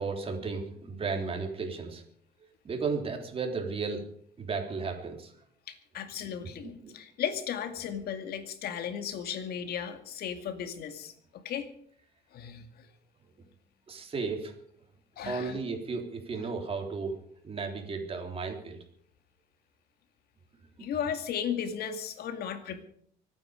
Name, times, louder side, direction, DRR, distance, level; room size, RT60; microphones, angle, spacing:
voice 1, 0.0-2.0 2.6-4.0 4.4-5.3 6.6-6.9 13.9-14.6 15.2-17.2 17.4-18.8, right 4 dB, 35° right, 3 dB, 3.5 m, -34 dB
voice 2, 5.7-11.7 12.3-12.7 15.2-15.6 20.8-22.8, left 8 dB, 65° left, 8 dB, 2.3 m, -35 dB
25.0 x 9.5 x 5.2 m, 0.63 s
cardioid pair, 110°, 17 cm